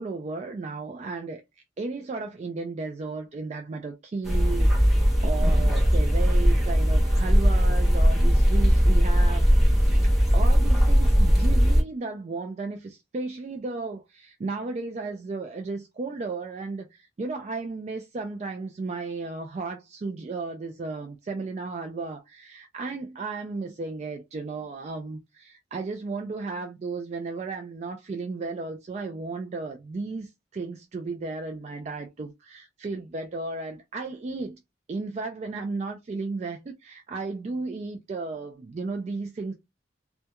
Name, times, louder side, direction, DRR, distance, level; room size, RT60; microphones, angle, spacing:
voice 1, 0.0-1.4 1.8-9.5 9.8-10.0 10.3-34.6 34.9-39.5, right 3 dB, 40° right, 0.3 m, -34 dB
sound 1, 4.2-11.8, equal, ahead, 0.7 m, -19 dB
2.3 x 2.2 x 2.8 m
head